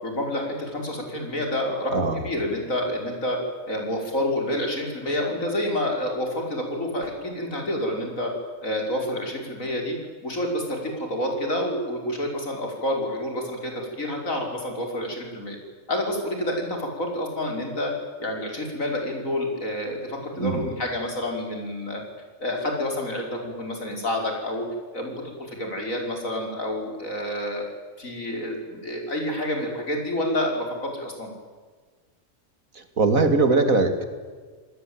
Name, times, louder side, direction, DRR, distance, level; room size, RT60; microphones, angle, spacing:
voice 1, 0.0-3.4 3.7-8.3 8.6-10.0 10.2-13.7 14.0-15.6 15.9-17.9 18.2-22.0 22.4-24.7 24.9-25.1 25.5-31.3, left 1 dB, 75° left, 2 dB, 5.9 m, -28 dB
voice 2, 20.4-20.7 32.7-34.0, right 3 dB, 85° right, 8 dB, 3.1 m, -21 dB
28.5 x 20.0 x 9.0 m, 1.5 s
omnidirectional pair, 1.4 m